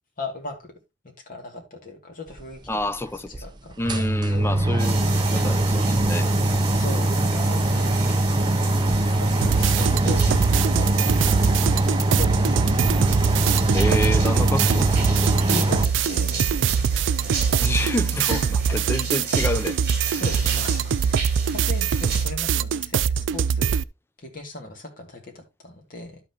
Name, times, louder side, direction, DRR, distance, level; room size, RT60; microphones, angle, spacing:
voice 1, 0.2-0.7 1.3-2.6 3.4-4.5 6.7-8.2 9.2-10.5 10.7-12.8 15.5-17.2 18.3-18.8 20.2-21.3 21.5-23.8 24.2-26.2, left 3 dB, 50° left, 2.4 m, -38 dB
voice 2, 2.7-3.3 3.8-6.3 13.7-14.9 17.6-19.8 20.1-20.3, left 1 dB, 15° left, 0.4 m, -28 dB
sound 1, 2.7-2.8 3.3-3.4 3.7-15.9, right 1 dB, 25° right, 0.7 m, -22 dB
sound 2, 4.8-22.3, right 4 dB, 55° right, 3.3 m, -34 dB
sound 3, 9.4-23.8, right 7 dB, 80° right, 0.4 m, -23 dB
12.0 x 5.9 x 2.9 m
head